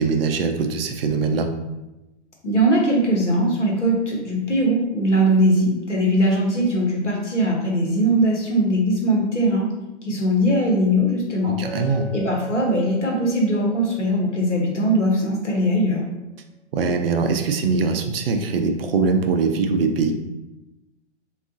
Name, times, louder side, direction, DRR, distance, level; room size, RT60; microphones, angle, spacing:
voice 1, 0.0-1.5 11.4-12.1 16.7-20.1, right 4 dB, 55° right, 5 dB, 0.4 m, -22 dB
voice 2, 2.4-9.7 10.0-11.6 12.1-16.0, right 1 dB, 85° left, -1 dB, 1.0 m, -20 dB
Chink clink, 11.6-15.6, left 1 dB, 5° left, 0.8 m, -40 dB
3.5 x 2.4 x 2.5 m, 1.0 s
figure-of-eight pair, 115°, 35 cm